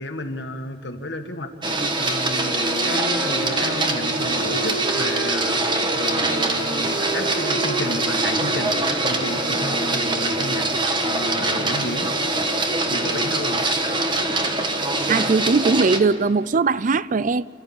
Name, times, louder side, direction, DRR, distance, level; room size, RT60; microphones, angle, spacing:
voice 1, 0.0-1.7 2.0-10.7 11.0-12.1 12.9-13.7, left 1 dB, 65° left, 1.9 m, -32 dB
Printer, 1.6-16.0, right 2 dB, 25° right, 1.4 m, -23 dB
Wind instrument woodwind instrument, 2.3-10.7, right 3 dB, 75° right, 5.4 m, -32 dB
voice 2, 15.1-17.4, right 4 dB, 45° right, 0.5 m, -20 dB
29.0 x 14.0 x 8.9 m
head